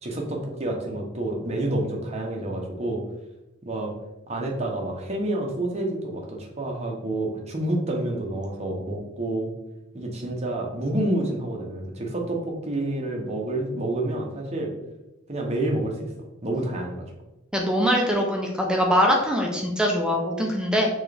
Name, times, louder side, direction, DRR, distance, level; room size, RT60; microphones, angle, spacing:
voice 1, 0.0-3.0 3.6-3.9 4.3-9.5 9.9-14.7 15.3-16.1 16.4-17.1, right 1 dB, 30° right, -1 dB, 0.8 m, -28 dB
voice 2, 17.5-20.9, equal, 5° right, 0 dB, 0.5 m, -22 dB
4.3 x 3.3 x 3.3 m, 0.95 s
head